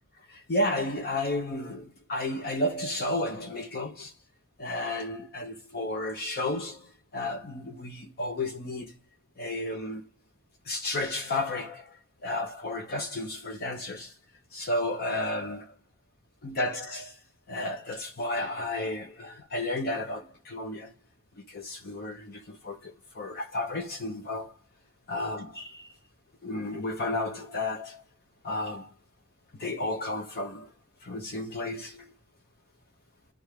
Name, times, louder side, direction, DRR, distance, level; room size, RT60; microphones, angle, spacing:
voice 1, 0.3-4.1 4.6-8.9 9.4-10.0 10.7-12.0 12.2-14.1 14.5-15.7 16.4-17.2 17.5-20.9 21.5-24.5 25.1-25.9 26.4-28.0 28.4-28.9 29.6-30.7 31.0-32.1, left 2 dB, 45° left, 0.7 m, -32 dB
10.0 x 3.4 x 3.3 m
head